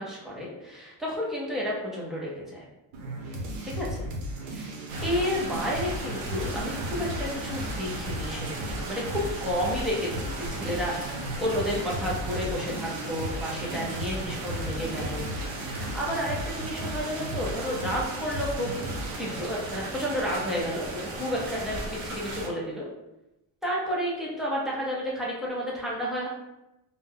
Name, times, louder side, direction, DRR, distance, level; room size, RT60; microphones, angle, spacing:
voice 1, 0.0-2.6 3.6-4.1 4.5-4.7 5.0-18.8 19.2-22.9 23.6-26.3, equal, ahead, -5 dB, 0.4 m, -31 dB
sound 1, 2.9-19.4, right 1 dB, 80° right, 0.9 m, -36 dB
sound 2, 4.9-22.5, right 2 dB, 45° right, 0.7 m, -37 dB
2.7 x 2.1 x 3.5 m, 0.93 s
cardioid pair, 150°, 48 cm